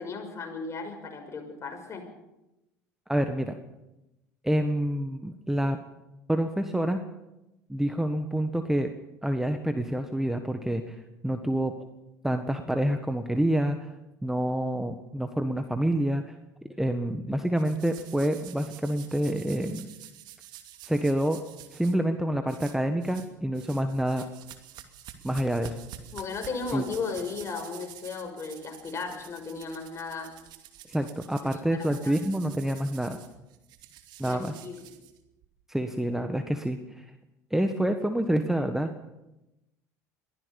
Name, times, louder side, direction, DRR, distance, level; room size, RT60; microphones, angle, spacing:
voice 1, 0.0-2.1 26.1-30.3 31.7-31.8 32.0-32.1 34.2-34.8, left 4 dB, 35° left, 4 dB, 6.1 m, -35 dB
voice 2, 3.1-3.5 4.4-5.8 6.3-7.0 7.7-8.9 9.2-11.7 12.2-13.9 14.2-16.3 16.8-19.9 20.8-21.4 21.7-24.2 25.2-25.8 26.7-26.8 30.9-33.2 34.2-34.5 35.7-37.0 37.5-38.9, right 1 dB, 5° right, 7 dB, 1.6 m, -27 dB
sound 1, 17.6-21.9 22.5-23.3 23.5-35.4, right 12 dB, 55° right, 2.5 m, -48 dB
23.0 x 16.0 x 7.2 m, 0.94 s
hypercardioid pair, 70°, 9 cm